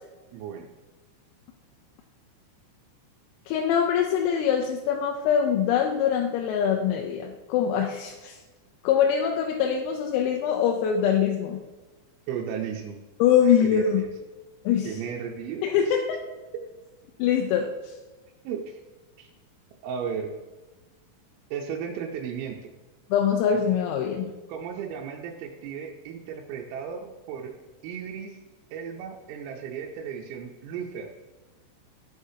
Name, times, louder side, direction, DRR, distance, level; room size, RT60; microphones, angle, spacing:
voice 1, 0.3-0.7 12.3-13.0 13.6-14.1 14.8-16.0 18.4-18.8 19.2-19.3 19.8-20.3 21.5-22.7 24.5-27.5 27.8-28.4 28.7-31.1, right 7 dB, 85° right, -1 dB, 3.4 m, -35 dB
voice 2, 3.5-8.4 8.8-11.6 13.2-14.0 14.7-15.0 15.6-16.0 17.2-18.0 23.1-24.3, left 8 dB, 85° left, 2 dB, 3.4 m, -23 dB
14.0 x 6.4 x 2.8 m, 1.2 s
omnidirectional pair, 5.9 m